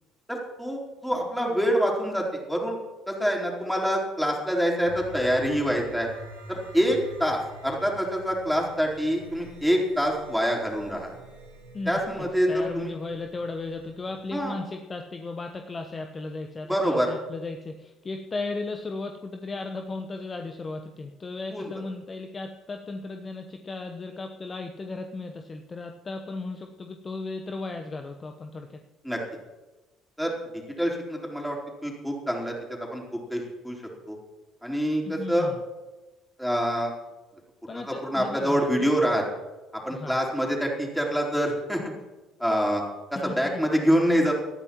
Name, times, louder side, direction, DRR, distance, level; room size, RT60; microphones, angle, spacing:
voice 1, 0.3-2.8 3.1-6.1 6.5-11.1 11.9-12.9 14.3-14.5 16.7-17.1 21.5-21.7 29.0-29.2 30.2-32.6 32.9-33.0 33.3-33.8 34.1-34.2 34.6-35.5 36.4-36.9 37.9-39.2 39.8-41.8 42.4-42.8 43.1-44.3, equal, ahead, -1 dB, 3.9 m, -26 dB
sound 1, 4.8-14.4, right 1 dB, 80° right, 3.2 m, -47 dB
voice 2, 11.7-28.8 35.0-35.6 37.7-38.9 39.9-40.2 43.1-43.6, left 3 dB, 30° left, 5 dB, 1.0 m, -36 dB
19.5 x 13.5 x 3.0 m, 1.1 s
figure-of-eight pair, 50°, 0 cm